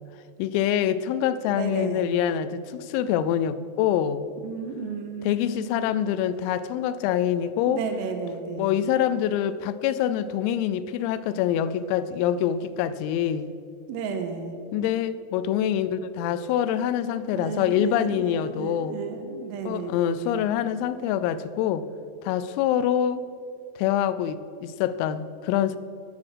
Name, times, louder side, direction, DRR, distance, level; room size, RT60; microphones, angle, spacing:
voice 1, 0.4-4.3 5.3-7.8 8.6-13.5 14.7-19.0 19.7-21.9 22.2-23.2 23.8-25.8, left 10 dB, 85° left, 15 dB, 3.2 m, -25 dB
voice 2, 1.5-2.1 4.4-5.9 7.7-8.7 13.9-14.5 17.3-20.4, right 5 dB, 85° right, 5 dB, 3.7 m, -33 dB
13.0 x 8.6 x 6.3 m, 2.5 s
omnidirectional pair, 6.0 m